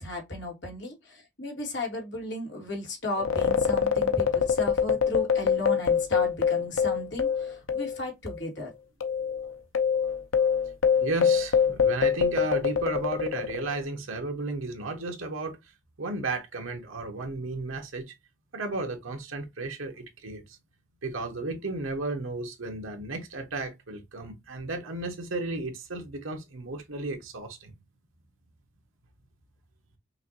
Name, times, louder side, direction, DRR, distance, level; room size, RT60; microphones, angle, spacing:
voice 1, 0.0-8.7, left 2 dB, 60° left, 1.9 m, -35 dB
sound 1, 3.2-8.0 8.3-8.4 9.0-13.8, left 7 dB, 85° left, 0.7 m, -24 dB
voice 2, 11.0-15.6 16.0-18.1 18.5-20.6 21.0-27.7, right 2 dB, 85° right, 1.2 m, -34 dB
5.6 x 2.6 x 2.7 m
head